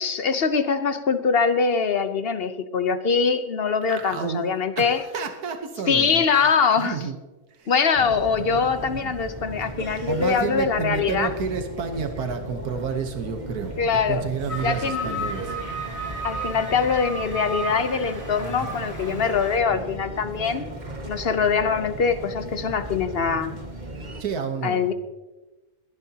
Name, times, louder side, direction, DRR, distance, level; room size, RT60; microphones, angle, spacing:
voice 1, 0.0-5.0 5.9-7.0 7.7-11.3 13.8-14.2 14.6-15.1 16.2-20.7 21.0-23.5 24.6-24.9, left 5 dB, 50° left, 10 dB, 0.9 m, -23 dB
voice 2, 3.9-4.5 4.8-6.2 6.8-7.2 7.5-7.7 8.4-9.0 9.6-9.7 10.1-15.6 18.4-18.8 24.2-24.9, right 5 dB, 85° right, 6 dB, 1.6 m, -30 dB
sound 1, 7.9-24.2, right 2 dB, 30° right, 1.7 m, -36 dB
sound 2, 14.5-19.6, right 1 dB, 10° right, 2.7 m, -34 dB
22.0 x 11.0 x 2.8 m, 1.1 s
omnidirectional pair, 1.6 m